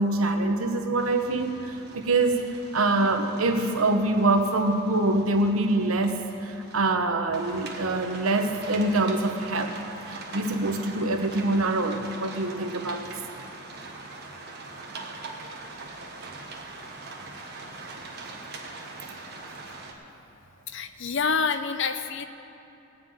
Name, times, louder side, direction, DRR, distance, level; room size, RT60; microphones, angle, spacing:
voice 1, 0.0-2.5 2.7-9.7 10.1-13.2, right 2 dB, 90° right, 5 dB, 1.1 m, -25 dB
sound 1, 1.0-6.9 7.3-19.9, right 3 dB, 50° right, 1.4 m, -42 dB
voice 2, 20.7-22.3, left 5 dB, 60° left, 10 dB, 0.7 m, -27 dB
17.0 x 5.9 x 9.2 m, 2.8 s
head